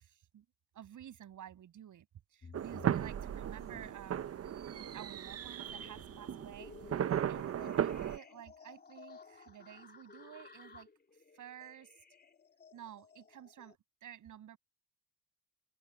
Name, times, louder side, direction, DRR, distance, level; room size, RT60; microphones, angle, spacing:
voice 1, 0.0-0.4 0.7-2.1 2.3-4.7 4.9-10.9 11.3-11.9 12.7-14.6, right 10 dB, 60° right, 8.0 m, -51 dB
sound 1, 2.4-4.3 4.7-13.7, left 5 dB, 25° left, 3.5 m, -56 dB
sound 2, 2.5-8.2, right 10 dB, 45° right, 1.0 m, -36 dB
cardioid pair, 100°, 35 cm